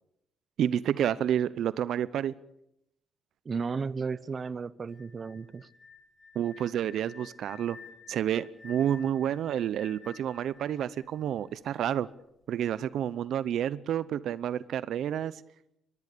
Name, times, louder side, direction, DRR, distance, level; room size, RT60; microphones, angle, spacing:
voice 1, 0.6-2.3 6.3-7.8 8.1-12.1 12.5-15.4, right 10 dB, 70° right, 0.8 m, -29 dB
voice 2, 3.4-5.7, right 5 dB, 40° right, 0.8 m, -34 dB
sound 1, 4.9-11.8, left 5 dB, 25° left, 2.8 m, -52 dB
24.5 x 21.0 x 6.8 m
cardioid pair, 90°, 0 cm